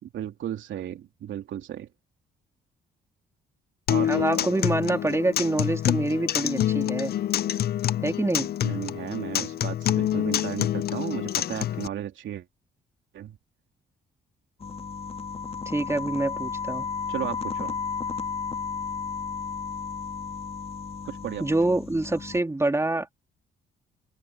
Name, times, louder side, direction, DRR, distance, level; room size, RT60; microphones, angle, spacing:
voice 1, 0.0-1.9 3.9-4.5 8.6-12.4 13.1-13.4 17.1-17.8 21.0-21.4, right 11 dB, 75° right, 3.1 m, -34 dB
Acoustic guitar, 3.9-11.9, left 11 dB, 55° left, 0.5 m, -27 dB
voice 2, 4.0-7.1 8.0-8.5 15.6-16.9 21.4-23.1, right 2 dB, 15° right, 3.2 m, -26 dB
sound 1, 14.6-22.4, left 5 dB, 30° left, 2.0 m, -33 dB
open air
cardioid pair, 90°, 20 cm